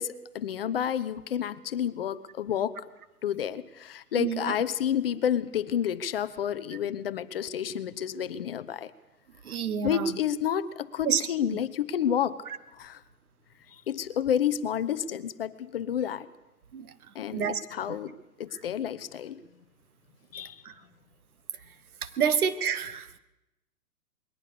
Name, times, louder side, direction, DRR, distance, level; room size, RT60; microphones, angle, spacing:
voice 1, 0.0-2.8 3.2-8.9 9.8-12.4 12.7-13.0 13.9-16.3 17.1-19.4 20.3-20.6, left 9 dB, 40° left, 15 dB, 0.7 m, -30 dB
voice 2, 4.2-4.5 9.4-10.2 11.0-11.2 16.7-16.9 17.3-17.6 20.6-20.7 22.0-23.1, right 7 dB, 65° right, 13 dB, 1.6 m, -28 dB
21.5 x 18.0 x 6.8 m, 0.96 s
hypercardioid pair, 150°, 47 cm